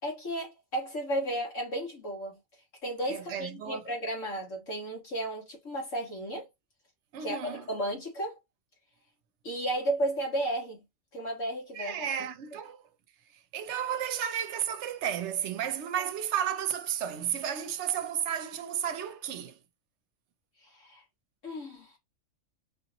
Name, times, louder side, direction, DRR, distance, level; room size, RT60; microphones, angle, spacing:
voice 1, 0.0-2.4 2.8-6.5 7.2-8.4 9.4-10.8 11.1-12.1 20.6-21.0 21.4-22.0, right 1 dB, 75° left, 2.3 m, -33 dB
voice 2, 3.1-3.8 7.1-7.7 11.7-12.9 13.3-19.6, right 9 dB, 65° right, 0.9 m, -33 dB
4.9 x 2.9 x 2.9 m
omnidirectional pair, 1.3 m